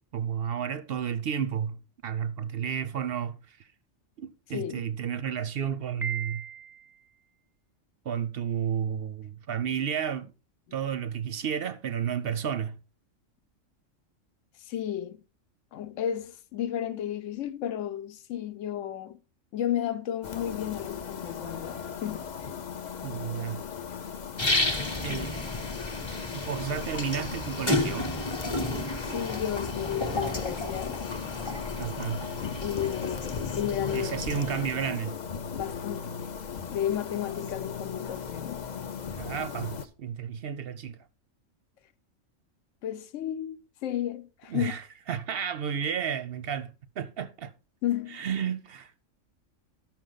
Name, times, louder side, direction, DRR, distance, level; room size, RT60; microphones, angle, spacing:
voice 1, 0.0-3.6 4.2-6.4 8.0-10.3 10.7-12.8 23.0-23.6 25.0-25.4 26.3-28.1 31.8-32.2 33.9-35.2 39.2-41.0 44.5-47.5 48.1-49.0, right 8 dB, 60° right, 0.7 m, -32 dB
voice 2, 4.5-4.9 14.7-15.2 15.7-19.2 19.5-22.3 25.1-25.3 29.0-31.0 32.6-34.1 35.5-36.2 36.7-38.6 42.8-44.7 47.8-48.2, left 10 dB, 75° left, 1.0 m, -33 dB
Piano, 6.0-7.0, right 8 dB, 5° right, 0.3 m, -37 dB
sound 1, 20.2-39.9, left 7 dB, 45° left, 0.6 m, -37 dB
sound 2, 24.4-34.8, left 2 dB, 25° left, 1.0 m, -32 dB
12.0 x 5.9 x 3.9 m
omnidirectional pair, 1.3 m